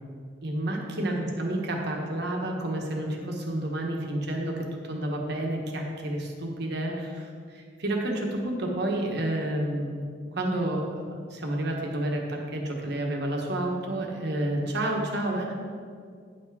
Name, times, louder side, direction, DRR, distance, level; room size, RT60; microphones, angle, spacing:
voice 1, 0.4-10.0 10.3-15.5, right 1 dB, 65° right, 0 dB, 1.4 m, -30 dB
10.0 x 6.0 x 4.7 m, 2.1 s
head